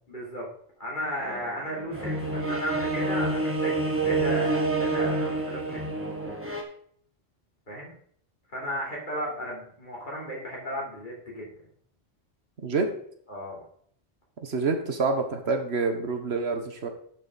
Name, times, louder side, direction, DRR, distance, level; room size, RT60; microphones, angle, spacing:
voice 1, 0.1-0.5 0.8-5.8 7.7-7.9 8.5-11.5 13.3-13.6, equal, 45° left, -4 dB, 3.6 m, -34 dB
sound 1, 1.2-6.6, right 3 dB, 10° right, 1.5 m, -28 dB
voice 2, 14.4-16.9, right 4 dB, 70° right, 6 dB, 1.4 m, -27 dB
10.5 x 6.9 x 4.0 m, 0.62 s
omnidirectional pair, 1.1 m